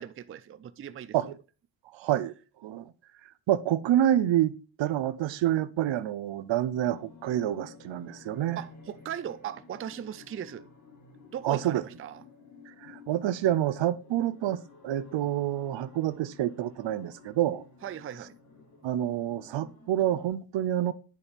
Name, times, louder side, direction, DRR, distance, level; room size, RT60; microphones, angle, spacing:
voice 1, 0.0-1.1 8.6-10.7 11.3-12.2 17.8-18.3, right 10 dB, 30° right, 0.4 m, -38 dB
voice 2, 1.9-2.3 2.6-2.9 3.5-8.6 11.4-11.8 12.7-17.6 18.8-20.9, right 12 dB, 80° right, 0.6 m, -28 dB
sound 1, 6.7-20.3, left 5 dB, 40° left, 2.0 m, -53 dB
9.6 x 5.2 x 4.1 m
wide cardioid pair, 160°, 45 cm